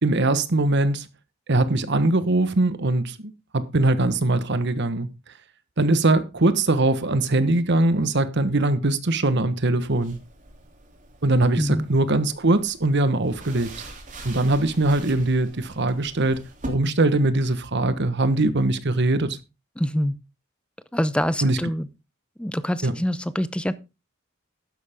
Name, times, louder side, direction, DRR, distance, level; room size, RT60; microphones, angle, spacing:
voice 1, 0.0-1.1 1.5-5.1 5.8-10.2 11.2-13.7 14.2-19.4 21.4-21.6 22.8-22.9, right 2 dB, 60° right, 1.3 m, -21 dB
sound 1, 9.9-16.7, right 2 dB, 40° right, 3.1 m, -43 dB
voice 2, 11.6-11.9 19.8-20.2 20.9-21.9 22.4-23.7, equal, 5° left, 0.7 m, -25 dB
12.0 x 10.0 x 3.6 m
head